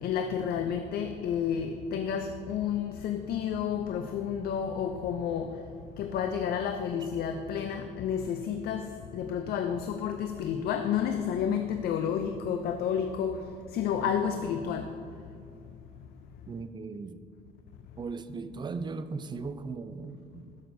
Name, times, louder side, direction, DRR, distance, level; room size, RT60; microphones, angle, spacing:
voice 1, 0.0-5.5 6.0-13.4 13.7-14.9, left 8 dB, 65° left, 6 dB, 0.5 m, -30 dB
voice 2, 16.5-17.2 18.0-20.6, right 4 dB, 25° right, 11 dB, 0.4 m, -38 dB
12.5 x 6.3 x 2.7 m, 2.4 s
cardioid pair, 110°, 17 cm